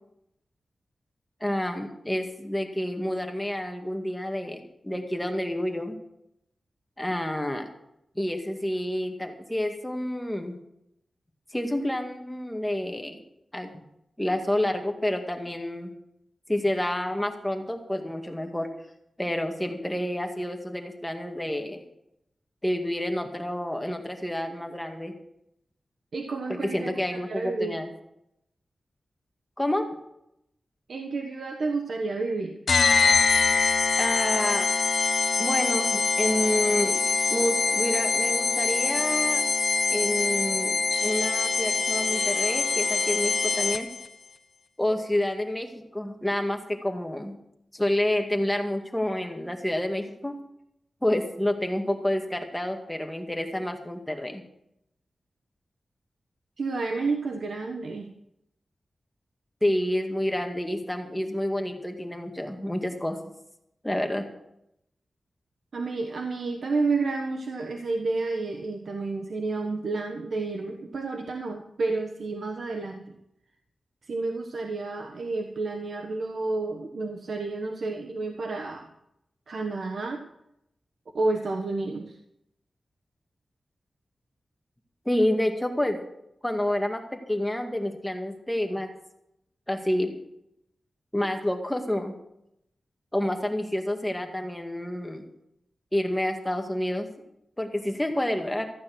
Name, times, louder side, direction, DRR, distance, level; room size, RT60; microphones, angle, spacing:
voice 1, 1.4-6.0 7.0-7.7 8.2-10.6 11.5-13.2 13.5-13.7 14.2-15.9 16.5-18.7 19.2-21.8 22.6-25.1 26.5-27.9 29.6-29.9 34.0-34.7 35.4-37.0 37.3-39.4 39.9-40.8 41.0-43.9 44.8-47.4 47.7-50.3 51.0-54.4 59.6-63.2 63.8-64.3 85.1-86.0 86.4-88.9 89.7-90.1 91.1-92.1 93.1-95.3 95.9-97.1 97.6-98.6, left 1 dB, 10° left, 4 dB, 2.1 m, -28 dB
voice 2, 26.1-27.8 30.9-32.6 56.6-58.1 65.7-73.1 74.0-78.9 79.5-80.3 81.1-82.2, right 3 dB, 75° right, 3 dB, 1.2 m, -30 dB
sound 1, 32.7-44.1, left 4 dB, 80° left, 0.9 m, -24 dB
15.0 x 9.5 x 6.2 m, 0.79 s
cardioid pair, 65°, 0 cm